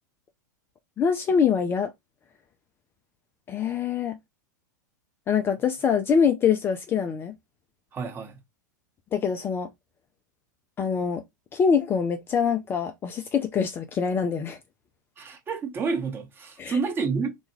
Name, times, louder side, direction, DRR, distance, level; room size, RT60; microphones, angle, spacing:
voice 1, 1.0-1.9 3.5-4.2 5.3-7.3 9.1-9.7 10.8-11.2 11.5-14.6 16.6-16.8, left 6 dB, 20° left, 0.4 m, -24 dB
voice 2, 7.9-8.4 15.2-17.4, right 5 dB, 20° right, 0.8 m, -29 dB
2.2 x 2.1 x 3.0 m
figure-of-eight pair, 95°, 10 cm